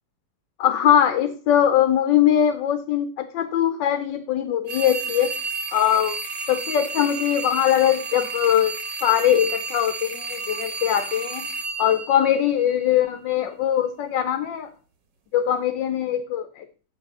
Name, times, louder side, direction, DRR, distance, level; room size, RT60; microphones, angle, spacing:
voice 1, 0.6-5.3 5.7-6.2 6.5-8.7 9.0-11.5 11.8-14.7 15.3-16.6, left 10 dB, 80° left, 9 dB, 1.4 m, -21 dB
sound 1, 4.7-12.9, right 4 dB, 85° right, 1.9 m, -32 dB
7.8 x 6.1 x 5.3 m, 0.38 s
omnidirectional pair, 1.9 m